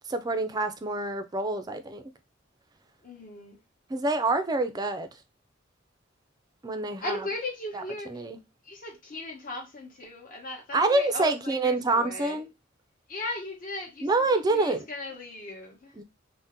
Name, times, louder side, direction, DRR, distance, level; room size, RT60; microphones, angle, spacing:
voice 1, 0.1-2.0 3.9-5.1 6.6-7.2 7.7-7.8 8.1-8.4 10.7-12.5 14.0-14.8 16.0-16.1, right 2 dB, 20° right, 0.4 m, -26 dB
voice 2, 3.0-3.6 7.0-8.2 8.6-12.4 13.1-16.0, left 2 dB, 45° left, 0.9 m, -37 dB
2.7 x 2.1 x 3.5 m
head